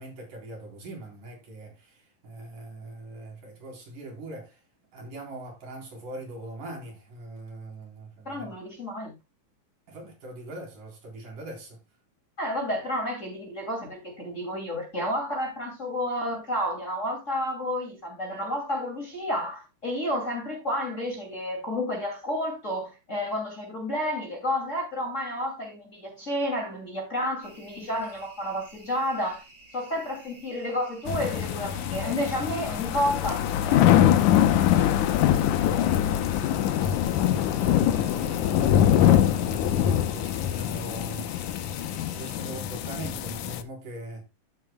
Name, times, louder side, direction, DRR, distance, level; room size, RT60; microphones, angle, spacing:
voice 1, 0.0-4.6 4.9-8.5 9.9-11.8 35.2-41.6 42.1-44.3, right 2 dB, 70° right, 5.6 m, -42 dB
voice 2, 8.2-9.1 12.4-29.4 29.7-34.1, equal, 25° left, 2.7 m, -31 dB
sound 1, 27.4-42.4, right 3 dB, 30° right, 6.1 m, -51 dB
sound 2, 31.1-43.6, left 11 dB, 75° left, 2.2 m, -23 dB
14.0 x 8.1 x 2.3 m
omnidirectional pair, 3.7 m